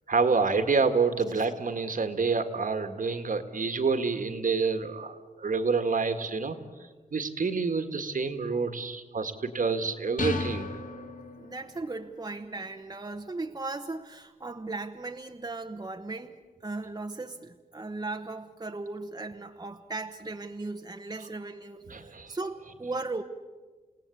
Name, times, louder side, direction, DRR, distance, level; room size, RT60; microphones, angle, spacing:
voice 1, 0.1-6.6 7.1-10.7 21.9-22.3, right 4 dB, 65° right, 8 dB, 1.8 m, -28 dB
sound 1, 10.2-11.8, left 3 dB, 60° left, 2.2 m, -34 dB
voice 2, 11.4-23.2, right 3 dB, 25° right, 5 dB, 1.1 m, -37 dB
29.5 x 17.5 x 8.4 m, 1.4 s
wide cardioid pair, 115°, 15 cm